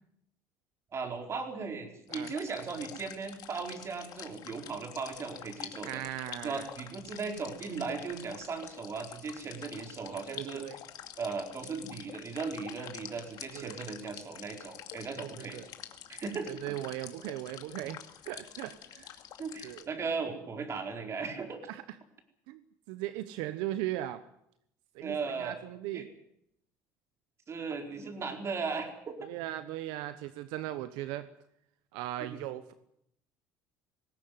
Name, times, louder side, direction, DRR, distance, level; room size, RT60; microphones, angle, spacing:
voice 1, 0.9-6.0 6.4-10.6 11.2-15.6 16.1-16.8 19.4-21.6 25.0-25.6 25.9-26.1 27.5-29.3 32.2-32.4, right 4 dB, 40° right, 4 dB, 4.7 m, -37 dB
sound 1, 2.1-19.9, left 11 dB, 60° left, 2.3 m, -47 dB
voice 2, 5.8-6.7 10.3-10.7 13.5-13.8 15.2-15.7 16.5-19.2 19.6-19.9 21.7-22.0 22.5-22.6 22.9-24.2 24.9-26.1 29.3-31.3 31.9-32.7, right 14 dB, 80° right, 12 dB, 1.0 m, -38 dB
19.5 x 17.5 x 9.5 m, 0.75 s
supercardioid pair, 95°, 7 cm